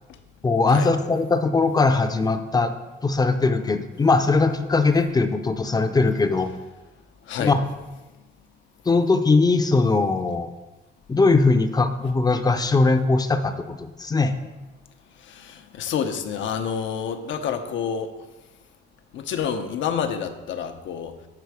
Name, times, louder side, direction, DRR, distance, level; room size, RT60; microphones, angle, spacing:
voice 1, 0.4-2.7 3.0-6.5 7.4-7.6 8.9-10.5 11.1-14.4, left 3 dB, 20° left, 8 dB, 0.5 m, -20 dB
voice 2, 7.2-7.6 15.1-18.1 19.1-21.2, left 7 dB, 75° left, 7 dB, 0.7 m, -28 dB
6.8 x 4.1 x 4.7 m, 1.1 s
cardioid pair, 90°, 20 cm